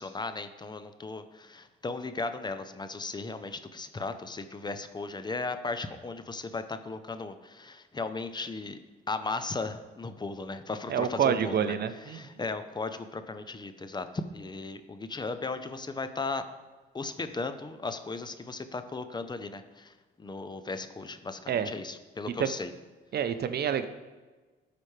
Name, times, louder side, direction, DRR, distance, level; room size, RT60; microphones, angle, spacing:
voice 1, 0.0-8.8 9.1-11.7 12.1-16.5 16.9-22.7, left 3 dB, 20° left, 10 dB, 0.6 m, -36 dB
voice 2, 10.9-12.3 21.5-21.7 22.4-22.5 23.1-23.9, right 8 dB, 55° right, 11 dB, 0.6 m, -28 dB
13.0 x 5.1 x 3.3 m, 1.3 s
cardioid pair, 90°, 20 cm